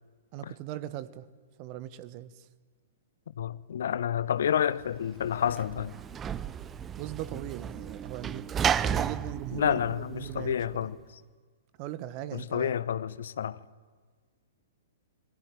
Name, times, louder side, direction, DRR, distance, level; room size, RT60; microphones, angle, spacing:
voice 1, 0.3-1.3 1.6-2.4 7.0-10.9 11.8-12.8, right 13 dB, 35° right, 1.3 m, -39 dB
voice 2, 3.4-6.0 9.5-11.0 12.3-13.6, left 9 dB, 60° left, 1.0 m, -29 dB
Sliding door / Slam, 4.9-10.7, right 8 dB, 20° right, 0.7 m, -33 dB
28.0 x 21.0 x 9.2 m
figure-of-eight pair, 110°, 0 cm